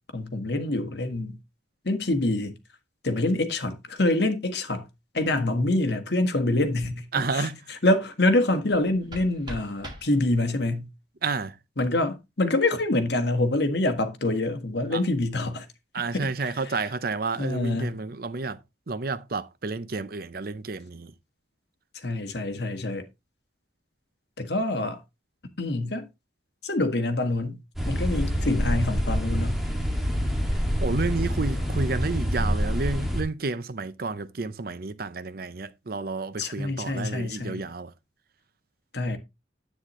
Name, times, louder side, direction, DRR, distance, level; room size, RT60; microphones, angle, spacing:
voice 1, 0.1-1.4 1.8-2.5 3.0-4.9 5.1-7.0 7.3-10.9 11.8-15.6 16.1-16.7 17.4-18.0 22.0-23.0 24.4-25.0 25.6-26.1 26.6-27.6 27.9-29.6 36.4-37.6 38.9-39.2, left 2 dB, 60° left, 1.5 m, -26 dB
voice 2, 7.1-7.6 11.2-11.5 14.9-15.0 15.9-18.6 18.9-21.1 30.8-37.9, right 3 dB, 50° right, 0.7 m, -30 dB
sound 1, 8.7-10.7, right 1 dB, 25° right, 2.4 m, -43 dB
sound 2, 27.8-33.2, equal, ahead, 2.1 m, -26 dB
9.9 x 8.5 x 3.1 m
head